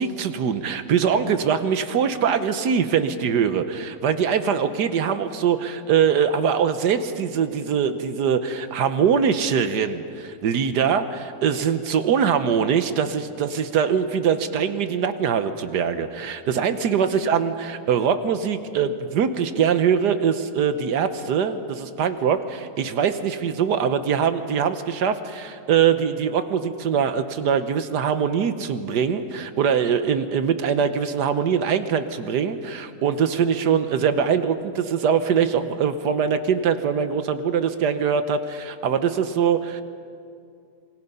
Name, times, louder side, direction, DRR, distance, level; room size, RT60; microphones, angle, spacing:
voice 1, 0.0-39.8, right 7 dB, 80° right, 10 dB, 1.5 m, -22 dB
28.0 x 21.0 x 5.5 m, 2.4 s
omnidirectional pair, 1.8 m